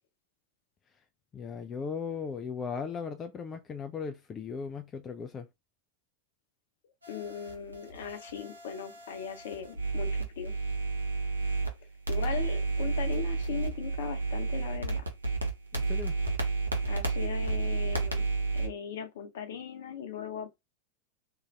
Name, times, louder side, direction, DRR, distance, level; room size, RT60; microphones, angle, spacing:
voice 1, 1.3-5.5 15.7-16.2, left 6 dB, 25° left, 0.3 m, -37 dB
sound 1, 7.0-11.7 12.1-18.7, right 3 dB, 80° right, 0.7 m, -31 dB
voice 2, 7.1-10.5 12.1-15.1 16.9-18.2 18.5-20.6, left 8 dB, 55° left, 0.7 m, -39 dB
2.6 x 2.2 x 3.1 m
figure-of-eight pair, 90°, 0 cm